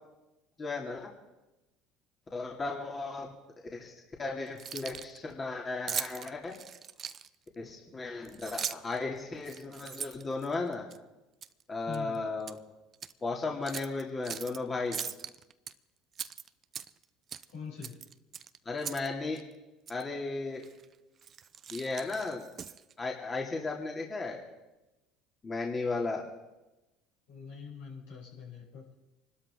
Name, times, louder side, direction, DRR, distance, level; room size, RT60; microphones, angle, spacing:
voice 1, 0.6-1.1 2.3-3.3 3.7-3.9 4.2-6.5 7.6-10.8 11.7-12.6 13.2-15.0 18.7-19.4 19.9-20.6 21.7-22.5 23.0-24.4 25.4-26.3, left 3 dB, 30° left, -1 dB, 2.5 m, -35 dB
Keys jangling, 4.5-5.2 5.9-7.5 8.2-9.0 9.4-11.0 11.4-11.6 11.9-12.6 12.9-13.1 13.7-14.6 14.9-15.7 16.1-17.0 17.3-17.5 17.8-19.1 19.4-19.5 19.9-20.0 20.6-20.8 21.2-22.9, right 8 dB, 45° right, 0.6 m, -40 dB
voice 2, 11.9-12.2 17.5-17.9 27.3-28.8, left 6 dB, 80° left, -5 dB, 7.0 m, -43 dB
25.5 x 12.5 x 3.7 m, 1.0 s
hypercardioid pair, 75°, 0 cm